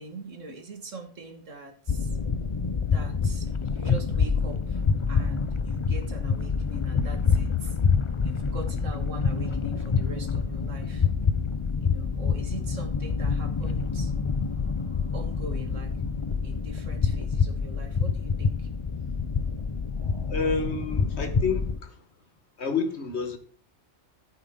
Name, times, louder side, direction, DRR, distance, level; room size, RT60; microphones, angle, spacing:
voice 1, 0.0-2.1 2.9-4.8 5.1-7.8 8.2-11.1 11.8-14.1 15.1-16.0 16.4-18.7, right 2 dB, 80° right, 2.3 m, -42 dB
sound 1, 1.9-21.8, left 5 dB, 45° left, 0.4 m, -27 dB
voice 2, 20.3-22.0 22.6-23.4, left 4 dB, 60° left, 1.7 m, -29 dB
13.0 x 8.7 x 3.7 m
omnidirectional pair, 1.3 m